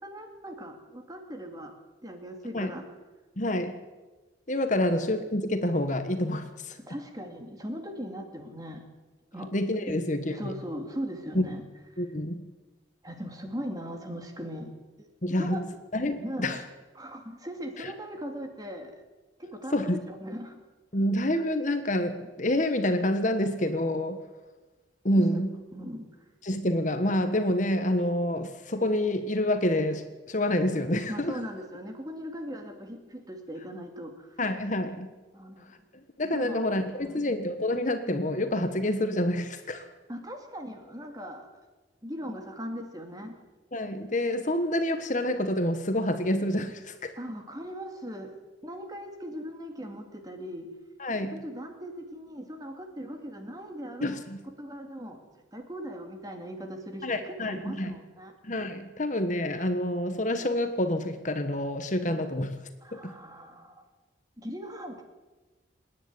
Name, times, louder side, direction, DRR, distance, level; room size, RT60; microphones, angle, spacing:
voice 1, 0.0-1.7 2.0-2.9 4.8-4.9 6.9-8.8 9.3-9.5 10.3-11.6 11.9-12.0 13.0-14.7 15.0-15.1 15.4-15.6 16.1-16.6 17.0-19.0 19.4-20.6 25.2-25.4 25.7-26.1 31.1-34.4 35.3-35.7 36.3-36.6 37.0-37.3 40.1-41.5 42.0-43.4 47.2-48.4 48.6-50.7 51.3-54.2 54.6-58.3 62.8-63.8 64.4-65.0, equal, 20° right, 4 dB, 2.4 m, -39 dB
voice 2, 3.4-3.8 4.5-6.8 9.5-10.5 11.3-11.5 12.0-12.5 15.2-15.6 15.9-16.6 17.8-17.9 19.7-20.0 20.9-24.2 25.0-25.6 26.4-31.4 34.4-35.1 36.2-39.9 43.7-47.1 51.0-51.4 54.0-54.4 57.0-57.9 58.4-62.5 63.0-63.2, left 1 dB, 40° left, 8 dB, 1.4 m, -28 dB
26.5 x 10.5 x 9.6 m, 1.2 s
head